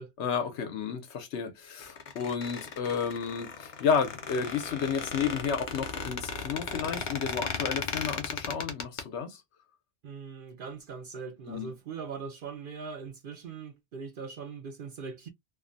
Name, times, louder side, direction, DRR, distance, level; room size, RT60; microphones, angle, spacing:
voice 1, 0.2-9.4 11.5-11.7, left 6 dB, 75° left, 0.9 m, -32 dB
Squeak, 1.8-9.0, left 5 dB, 55° left, 0.6 m, -36 dB
voice 2, 10.0-15.3, right 5 dB, 60° right, 0.6 m, -41 dB
2.6 x 2.1 x 2.5 m
omnidirectional pair, 1.2 m